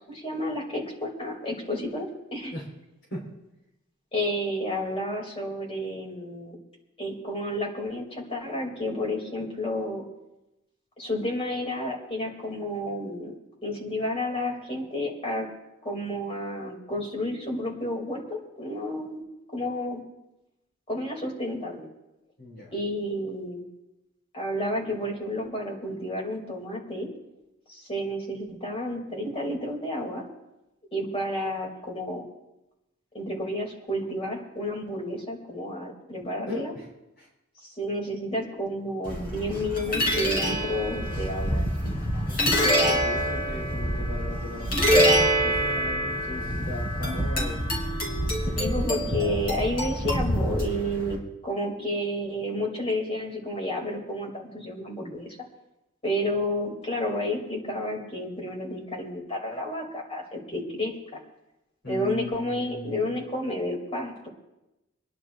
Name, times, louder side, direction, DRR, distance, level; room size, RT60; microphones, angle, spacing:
voice 1, 0.0-2.5 4.1-6.6 7.0-10.0 11.0-13.4 13.6-15.5 15.8-19.2 19.5-20.0 20.9-21.9 22.7-23.6 24.3-27.1 27.7-30.2 30.9-32.3 33.1-36.7 37.8-41.9 48.6-55.4 56.0-61.2 61.9-64.3, left 1 dB, 30° left, 0 dB, 3.0 m, -31 dB
voice 2, 22.4-22.7 36.5-36.9 37.2-37.3 42.1-47.7 61.8-63.2, left 2 dB, 60° left, -3 dB, 4.4 m, -38 dB
sound 1, 39.0-51.1, equal, 45° left, 3.4 m, -26 dB
27.5 x 11.0 x 2.6 m, 0.95 s
head